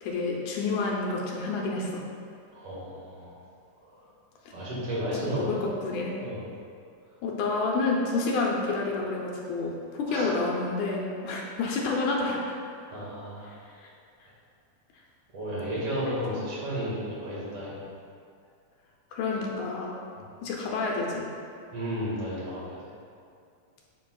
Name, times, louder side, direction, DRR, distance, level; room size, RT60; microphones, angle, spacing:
voice 1, 0.0-2.0 5.4-6.1 7.2-12.4 13.8-13.9 16.4-16.5 19.1-20.0 20.4-21.3, left 3 dB, 75° left, -2 dB, 2.1 m, -29 dB
voice 2, 2.5-3.4 3.8-4.0 4.5-5.6 6.2-6.4 10.1-10.3 12.9-13.5 15.3-17.8 21.7-22.8, equal, 50° right, -7 dB, 2.6 m, -33 dB
11.0 x 5.4 x 2.3 m, 2.4 s
omnidirectional pair, 3.6 m